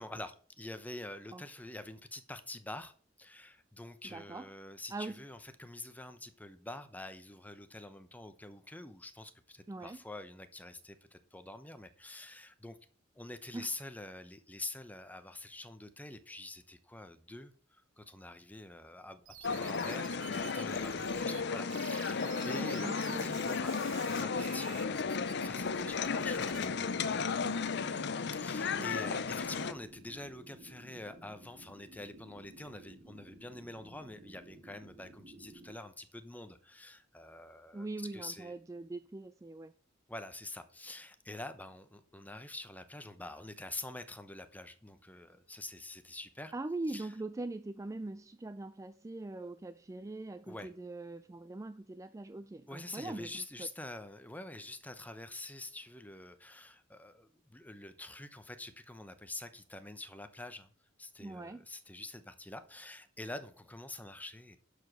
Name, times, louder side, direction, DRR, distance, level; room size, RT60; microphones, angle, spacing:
voice 1, 0.0-2.9 3.2-12.8 13.1-23.7 24.0-27.5 28.3-38.5 40.1-46.5 46.9-47.1 50.5-50.7 52.7-60.7 61.0-64.6, left 2 dB, 10° left, 0.8 m, -46 dB
voice 2, 4.1-4.5 4.9-5.2 9.7-10.0 13.5-13.7 22.5-23.3 28.8-29.2 37.7-39.7 46.5-53.7 61.2-61.6, right 2 dB, 15° right, 0.3 m, -42 dB
sound 1, 19.2-21.4 21.7-26.7, right 12 dB, 80° right, 0.8 m, -50 dB
sound 2, 19.4-29.7, left 5 dB, 60° left, 0.6 m, -34 dB
sound 3, 25.0-35.8, right 1 dB, 45° right, 1.2 m, -55 dB
11.5 x 5.0 x 6.0 m
head